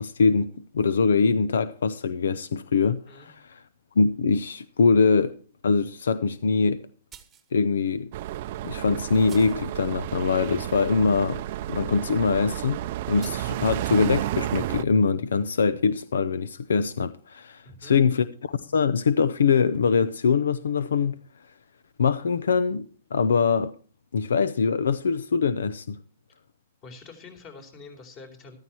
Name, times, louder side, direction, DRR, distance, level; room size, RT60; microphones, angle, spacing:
voice 1, 0.0-3.6 4.0-5.4 5.6-6.8 7.5-8.1 8.6-11.4 11.7-12.8 13.1-21.2 22.0-23.7 24.1-26.0, left 5 dB, 90° left, 0.6 m, -23 dB
sound 1, 7.1-7.5 8.4-8.5 9.3-9.7 13.2-13.5, right 9 dB, 20° right, 1.2 m, -49 dB
sound 2, 8.1-14.8, right 14 dB, 50° right, 0.5 m, -31 dB
voice 2, 17.6-18.0 26.8-28.6, left 3 dB, 35° left, 3.9 m, -46 dB
14.0 x 13.0 x 3.0 m
hypercardioid pair, 140°, 0 cm